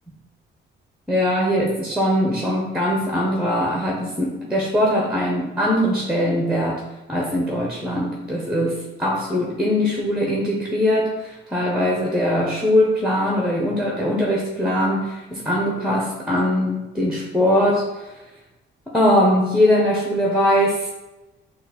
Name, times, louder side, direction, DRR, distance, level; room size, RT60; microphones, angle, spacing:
voice 1, 1.1-6.8 7.1-18.1 18.9-20.9, equal, 5° right, -1 dB, 0.7 m, -21 dB
4.0 x 2.4 x 4.1 m, 1.0 s
cardioid pair, 90°, 20 cm